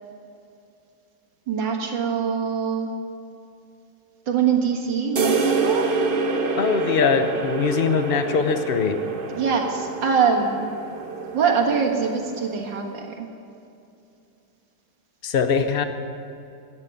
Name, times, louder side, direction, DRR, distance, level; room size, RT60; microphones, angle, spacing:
voice 1, 1.5-2.9 4.3-5.9 9.4-10.7 11.3-13.3, right 6 dB, 70° right, 1 dB, 2.2 m, -23 dB
sound 1, 5.2-12.7, right 3 dB, 45° right, 0.7 m, -27 dB
voice 2, 6.6-9.0 15.2-15.8, left 6 dB, 65° left, 8 dB, 0.5 m, -22 dB
13.5 x 9.5 x 9.2 m, 2.6 s
omnidirectional pair, 2.1 m